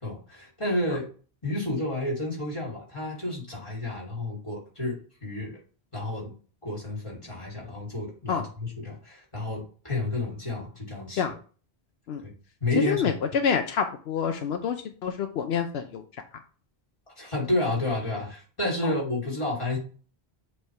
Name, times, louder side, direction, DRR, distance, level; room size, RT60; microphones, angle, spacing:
voice 1, 0.0-1.1 1.4-5.6 5.9-6.3 6.6-11.2 12.2-12.3 12.6-13.1 17.2-19.8, left 1 dB, 30° left, -5 dB, 3.0 m, -30 dB
voice 2, 12.8-14.8 15.0-16.0 18.8-18.9, left 7 dB, 80° left, 6 dB, 0.9 m, -27 dB
7.9 x 3.5 x 4.6 m, 0.40 s
omnidirectional pair, 1.0 m